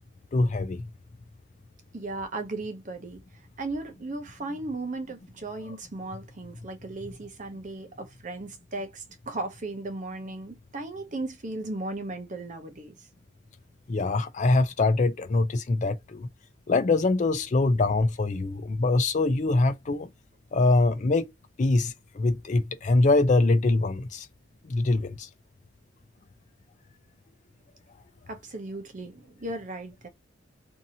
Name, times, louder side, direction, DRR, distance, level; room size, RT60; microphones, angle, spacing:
voice 1, 0.3-0.9 13.9-16.3 16.7-20.1 20.5-21.3 21.6-24.3 24.7-25.3, left 2 dB, 40° left, 0.4 m, -23 dB
voice 2, 1.9-3.2 3.6-13.0 28.3-30.1, right 2 dB, 40° right, 0.7 m, -36 dB
2.7 x 2.6 x 2.6 m
head